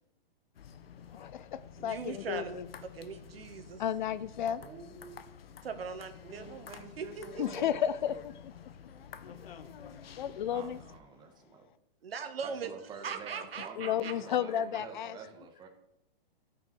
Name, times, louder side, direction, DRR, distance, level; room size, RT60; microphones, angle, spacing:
sound 1, 0.5-11.0, left 8 dB, 75° left, 1.1 m, -50 dB
voice 1, 1.2-2.7 3.8-4.6 7.4-8.5 10.2-10.8 13.8-15.2, left 9 dB, 50° left, 16 dB, 0.6 m, -33 dB
voice 2, 1.8-2.6 2.9-3.8 5.6-7.6 12.0-12.7 13.0-14.2, right 6 dB, 80° right, 8 dB, 1.7 m, -40 dB
voice 3, 4.6-5.3 6.2-7.7 10.5-11.7 12.4-15.7, right 5 dB, 15° right, 3 dB, 1.6 m, -48 dB
13.5 x 6.0 x 6.1 m, 0.82 s
hypercardioid pair, 155°, 30 cm